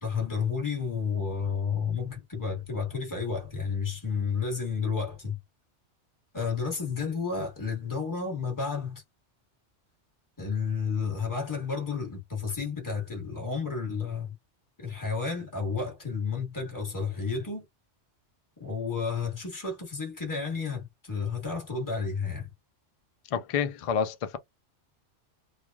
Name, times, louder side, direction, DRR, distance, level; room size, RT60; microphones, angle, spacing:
voice 1, 0.0-5.4 6.3-9.0 10.4-14.3 14.8-17.6 18.6-22.5, left 5 dB, 15° left, 1.4 m, -31 dB
voice 2, 23.3-24.4, left 7 dB, 60° left, 0.3 m, -28 dB
3.1 x 2.3 x 2.3 m
omnidirectional pair, 1.2 m